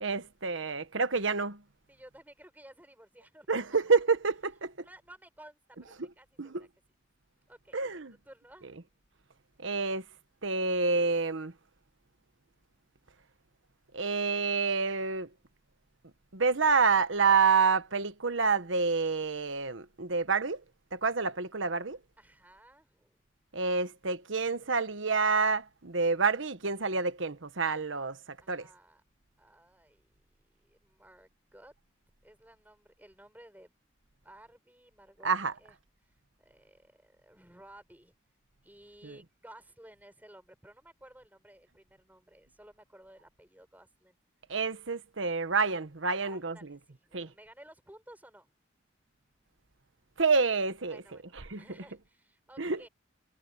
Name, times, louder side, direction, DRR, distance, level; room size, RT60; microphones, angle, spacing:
voice 1, 0.0-1.6 3.5-4.7 6.4-6.7 7.7-8.1 9.6-10.0 10.4-11.5 13.9-15.3 16.3-20.6 20.9-22.0 23.5-28.2 28.5-28.7 35.2-35.5 39.0-39.2 44.5-46.8 47.1-47.3 50.2-51.0 51.3-51.6 52.6-52.9, right 4 dB, 85° right, 1.3 m, -28 dB
voice 2, 1.9-3.5 4.8-6.7 7.5-7.8 8.2-8.8 22.2-23.2 28.4-29.0 29.4-30.1 30.6-31.7 32.2-33.7 34.2-35.3 35.6-35.8 36.0-38.1 38.6-44.2 46.1-48.5 50.9-52.9, right 1 dB, 10° right, 6.3 m, -55 dB
head